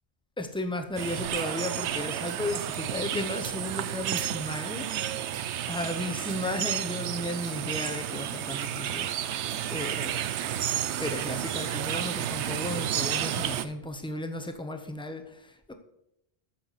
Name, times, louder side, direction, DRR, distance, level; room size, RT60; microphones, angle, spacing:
voice 1, 0.4-5.1 5.7-10.3 11.0-15.7, left 1 dB, 5° left, 6 dB, 0.7 m, -34 dB
sound 1, 1.0-13.7, right 10 dB, 85° right, 0.9 m, -31 dB
13.0 x 6.4 x 4.2 m, 0.80 s
omnidirectional pair, 1.1 m